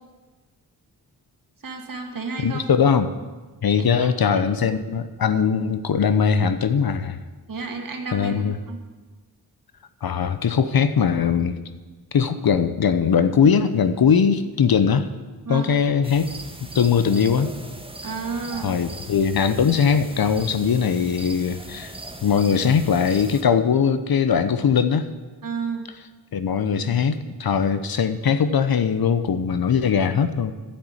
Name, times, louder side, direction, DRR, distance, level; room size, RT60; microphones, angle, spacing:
voice 1, 1.6-2.6 4.0-4.4 7.5-8.8 15.4-15.7 18.0-18.7 25.4-25.8, right 5 dB, 55° right, 3 dB, 2.2 m, -31 dB
voice 2, 2.4-3.1 3.6-7.2 8.1-8.6 10.0-11.6 12.1-15.1 15.5-16.3 16.7-17.5 18.6-21.9 22.2-25.1 26.3-30.5, left 6 dB, 60° left, 11 dB, 1.0 m, -20 dB
sound 1, 16.0-23.4, right 2 dB, 15° right, 1.6 m, -39 dB
10.5 x 7.8 x 9.0 m, 1.3 s
cardioid pair, 45°, 40 cm